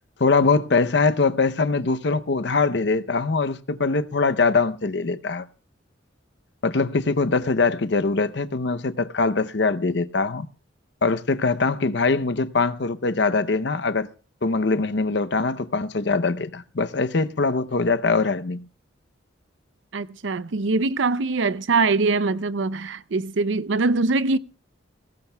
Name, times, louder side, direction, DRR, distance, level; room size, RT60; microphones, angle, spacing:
voice 1, 0.2-5.5 6.6-10.5 11.0-14.1 14.4-18.6, left 4 dB, 60° left, 0.7 m, -22 dB
voice 2, 19.9-24.4, right 3 dB, 75° right, 0.6 m, -23 dB
21.0 x 17.5 x 2.3 m
head